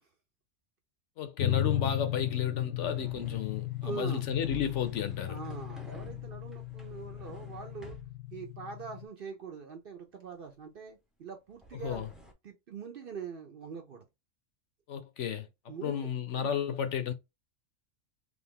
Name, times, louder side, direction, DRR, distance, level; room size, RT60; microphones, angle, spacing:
voice 1, 1.2-5.4 11.8-12.1 14.9-17.1, left 8 dB, 65° left, 0.9 m, -33 dB
sound 1, 1.4-9.0, left 13 dB, 85° left, 1.3 m, -35 dB
sound 2, 2.8-8.1 11.5-12.3, right 1 dB, ahead, 0.4 m, -50 dB
voice 2, 3.8-4.3 5.3-8.0 8.3-12.0 12.4-14.0 15.7-16.1 16.4-16.5, right 6 dB, 55° right, 0.7 m, -43 dB
3.5 x 2.4 x 3.6 m
omnidirectional pair, 1.4 m